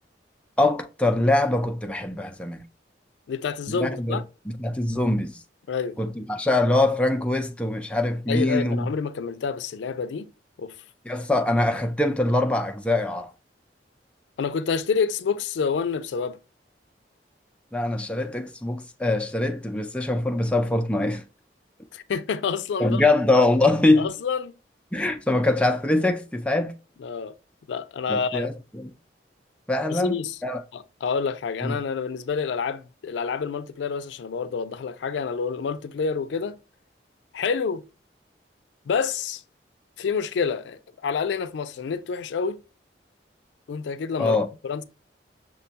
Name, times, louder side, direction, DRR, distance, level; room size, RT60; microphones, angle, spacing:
voice 1, 0.6-2.6 3.7-4.2 4.5-5.4 6.0-8.9 11.1-13.3 17.7-21.2 22.8-24.1 24.9-26.7 28.1-28.9 29.7-30.6 31.6-31.8 44.2-44.5, left 2 dB, 5° left, 0.3 m, -23 dB
voice 2, 3.3-4.2 5.7-6.0 8.3-10.3 10.6-10.8 14.4-16.4 21.9-23.0 24.0-24.5 27.0-27.3 27.7-28.5 29.9-30.4 30.7-36.6 37.3-37.8 38.9-39.4 40.0-42.6 43.7-44.4 44.6-44.8, left 5 dB, 85° left, 0.4 m, -28 dB
5.9 x 2.2 x 2.7 m
head